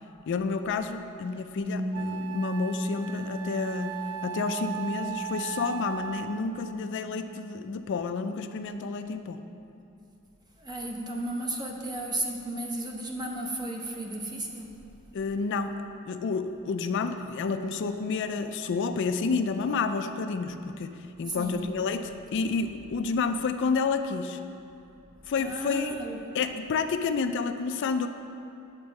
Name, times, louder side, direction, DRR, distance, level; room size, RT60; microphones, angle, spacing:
voice 1, 0.3-4.0 4.2-9.4 15.1-24.4 25.3-26.0 26.3-28.1, left 4 dB, 60° left, 8 dB, 0.4 m, -30 dB
Wind instrument woodwind instrument, 1.3-1.4 1.9-6.6, right 10 dB, 70° right, 0.4 m, -38 dB
Piano, 1.6-8.8, equal, 40° left, 0.7 m, -37 dB
voice 2, 10.6-14.8 21.3-21.7 25.4-26.2, right 1 dB, 20° right, 1 dB, 0.8 m, -34 dB
8.6 x 4.5 x 6.4 m, 2.8 s
head